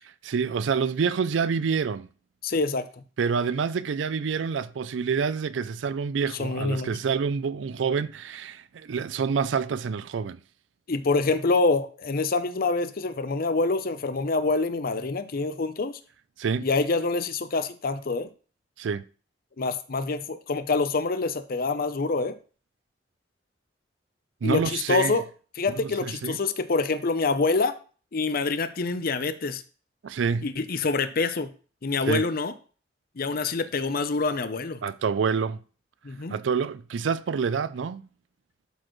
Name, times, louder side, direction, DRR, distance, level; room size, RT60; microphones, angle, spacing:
voice 1, 0.2-2.1 3.2-10.4 16.4-16.7 18.8-19.0 24.4-25.2 25.7-26.4 30.0-30.5 32.1-32.2 34.8-35.6 36.3-38.1, right 6 dB, 90° right, 0.4 m, -27 dB
voice 2, 2.4-2.9 6.4-7.0 10.9-16.0 16.6-18.3 19.6-22.4 24.4-25.2 25.6-27.7 28.1-29.6 30.4-31.5 31.8-32.5 33.2-34.8 36.0-36.3, left 3 dB, 55° left, 0.6 m, -26 dB
12.0 x 4.3 x 3.1 m
head